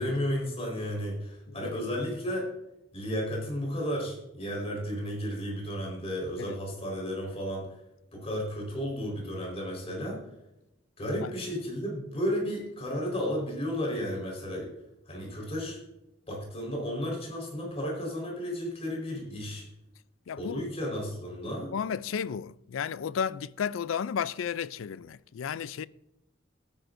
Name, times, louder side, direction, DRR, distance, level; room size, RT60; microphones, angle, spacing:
voice 1, 0.0-2.5 2.9-7.7 8.1-10.2 11.0-14.7 15.1-15.8 16.3-19.6 20.4-21.7, equal, 30° left, 4.4 m, -33 dB
voice 2, 1.5-1.8 6.4-6.6 11.2-11.3 20.3-20.6 21.5-25.9, left 7 dB, 85° left, 0.4 m, -33 dB
18.0 x 9.4 x 2.6 m
head